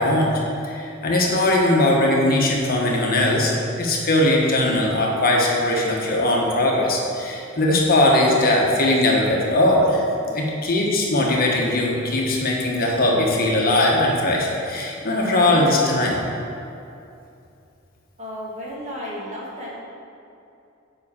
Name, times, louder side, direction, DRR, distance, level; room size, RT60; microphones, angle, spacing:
voice 1, 0.0-3.5 3.8-10.0 10.3-16.2, left 1 dB, 45° left, -2 dB, 1.3 m, -20 dB
voice 2, 10.2-10.6 18.2-19.8, equal, 35° right, -5 dB, 2.2 m, -34 dB
7.5 x 5.5 x 7.2 m, 2.6 s
head